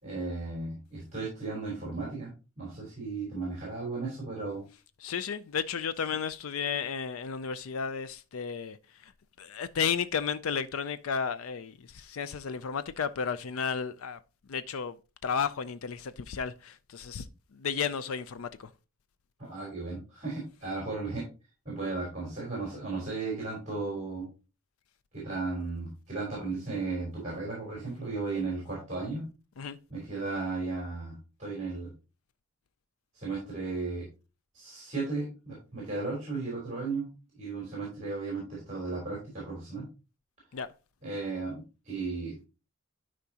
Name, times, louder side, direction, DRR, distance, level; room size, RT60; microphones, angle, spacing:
voice 1, 0.0-2.3 2.6-4.6 19.4-21.3 21.7-24.3 25.1-29.2 29.9-31.9 33.1-34.1 34.5-39.9 41.0-42.5, right 3 dB, 35° right, 3.6 m, -35 dB
voice 2, 5.0-8.8 9.0-9.1 9.4-14.2 14.5-17.3 17.5-18.7 29.6-29.8 40.5-40.7, left 6 dB, 90° left, 0.5 m, -33 dB
12.0 x 5.0 x 2.8 m
head